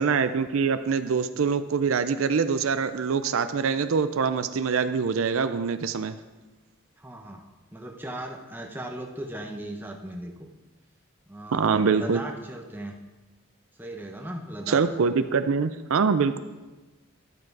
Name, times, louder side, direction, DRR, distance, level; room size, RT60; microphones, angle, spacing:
voice 1, 0.0-6.1 11.5-12.2 14.7-16.4, right 5 dB, 75° right, 11 dB, 0.5 m, -24 dB
voice 2, 7.0-7.5 7.7-10.3 11.3-12.9 13.8-14.8, right 1 dB, 10° right, 1 dB, 0.9 m, -37 dB
11.0 x 7.6 x 4.7 m, 1.2 s
head